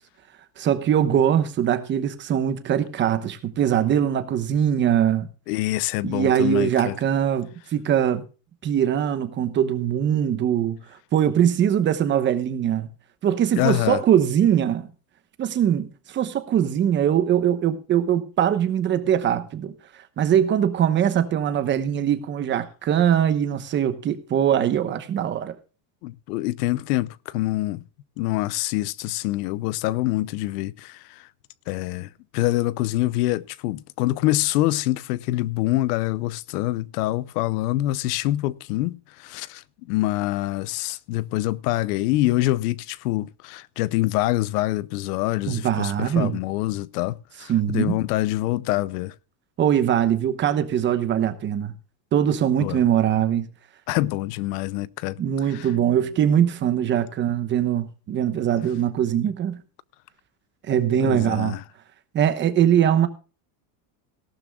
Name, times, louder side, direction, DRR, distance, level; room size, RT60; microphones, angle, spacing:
voice 1, 0.6-5.3 6.0-8.2 8.6-10.8 11.1-12.9 13.2-14.9 15.4-19.7 20.2-25.6 45.5-46.4 47.5-48.0 49.6-51.7 52.1-53.5 55.2-59.6 60.7-61.6 62.1-63.1, right 9 dB, 25° right, 1.0 m, -22 dB
voice 2, 5.5-7.0 13.6-14.0 26.0-27.8 28.2-31.3 31.7-49.1 52.6-52.8 53.9-55.2 55.5-55.7 61.0-61.6, left 16 dB, 70° left, 0.8 m, -25 dB
17.5 x 12.0 x 2.3 m
cardioid pair, 170°, 48 cm